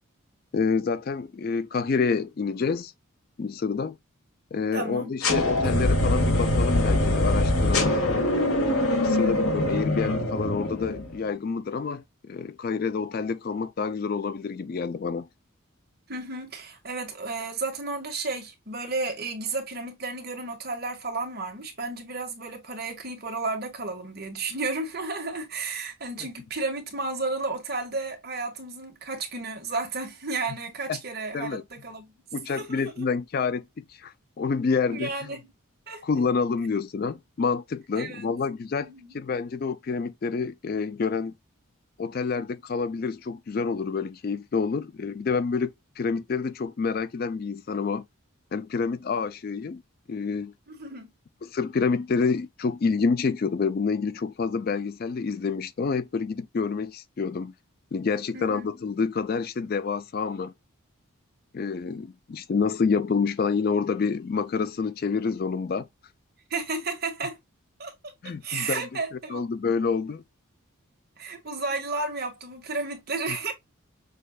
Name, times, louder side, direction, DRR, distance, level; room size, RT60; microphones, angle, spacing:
voice 1, 0.5-2.9 3.4-4.0 4.5-8.0 9.0-15.3 26.2-26.3 30.9-31.0 31.3-31.6 32.3-35.3 36.0-38.9 39.1-41.3 42.0-48.0 48.5-49.8 50.1-50.5 51.4-57.5 57.9-60.5 61.5-65.9 68.2-70.2, left 5 dB, 45° left, 0.3 m, -28 dB
voice 2, 4.7-5.1 9.0-9.4 16.1-32.0 32.5-33.1 34.9-35.5 35.9-36.0 37.9-38.3 38.8-39.2 50.7-51.1 58.3-58.7 66.5-67.4 67.8-69.4 71.2-73.5, right 3 dB, 45° right, 1.5 m, -33 dB
sound 1, 5.2-11.2, left 1 dB, 75° left, 1.4 m, -23 dB
6.4 x 2.6 x 2.3 m
head